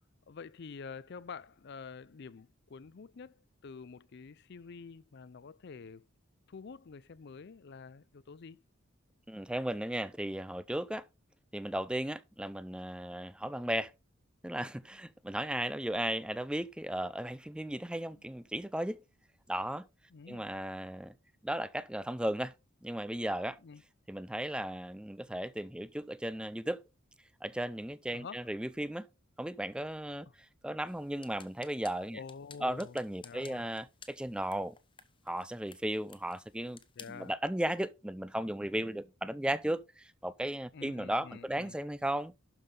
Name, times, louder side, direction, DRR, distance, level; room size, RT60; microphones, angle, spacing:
voice 1, 0.3-6.1 6.5-8.6 18.1-18.3 20.1-20.5 23.6-23.8 28.1-28.4 32.1-33.0 33.2-33.7 37.0-37.3 40.7-41.8, left 5 dB, 55° left, 0.5 m, -48 dB
voice 2, 9.3-11.0 11.5-13.9 14.4-19.0 19.5-19.9 20.3-21.1 21.4-22.5 22.8-23.6 24.1-26.8 27.4-29.1 29.4-30.3 30.6-32.2 32.6-34.8 35.3-36.8 37.1-42.3, right 1 dB, 5° right, 0.4 m, -35 dB
sound 1, 30.9-37.3, left 6 dB, 25° left, 0.8 m, -57 dB
12.0 x 5.6 x 3.7 m
head